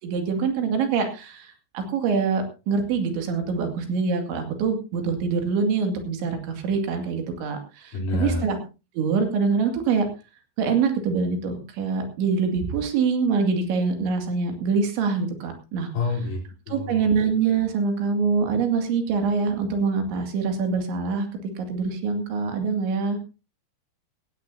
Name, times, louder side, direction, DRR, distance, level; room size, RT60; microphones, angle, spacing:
voice 1, 0.0-8.6 8.9-10.1 10.6-15.9 16.7-21.3 21.6-23.2, right 5 dB, 90° right, 5 dB, 4.7 m, -24 dB
voice 2, 7.9-8.4 15.9-16.4 16.7-17.0, left 3 dB, 55° left, 2 dB, 5.0 m, -27 dB
16.5 x 16.5 x 2.8 m, 0.31 s
omnidirectional pair, 5.1 m